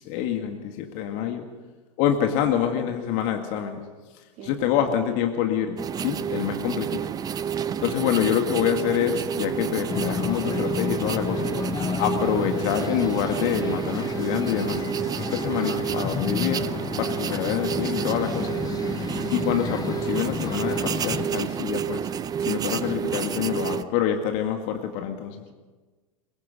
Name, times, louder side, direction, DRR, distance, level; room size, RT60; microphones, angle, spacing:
voice 1, 0.0-1.5 2.0-3.8 4.4-7.0 7.8-11.5 12.0-14.8 15.3-16.7 17.0-18.6 19.3-22.1 22.4-25.4, left 9 dB, 45° left, 5 dB, 2.1 m, -26 dB
voice 2, 2.3-2.9 4.4-5.1 18.0-18.6, right 5 dB, 40° right, 2 dB, 3.3 m, -41 dB
sound 1, 5.8-23.8, right 8 dB, 20° right, 0.6 m, -29 dB
sound 2, 9.9-21.3, left 7 dB, 20° left, 0.9 m, -32 dB
23.0 x 22.0 x 5.5 m, 1.3 s
figure-of-eight pair, 90°, 19 cm